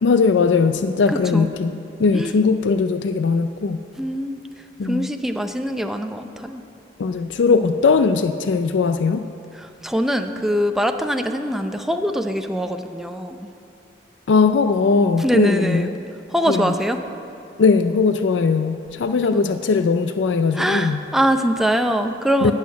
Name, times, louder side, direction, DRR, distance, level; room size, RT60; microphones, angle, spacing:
voice 1, 0.0-3.8 4.8-5.1 7.0-9.2 14.3-15.9 16.5-16.7 17.6-21.0 22.4-22.5, left 4 dB, 80° left, 9 dB, 0.4 m, -19 dB
voice 2, 1.1-1.5 2.1-2.3 4.0-4.4 4.8-6.6 9.6-13.5 15.2-15.9 16.3-17.0 19.3-19.4 20.5-22.5, equal, ahead, 6 dB, 0.5 m, -23 dB
12.0 x 6.5 x 9.4 m, 2.6 s
head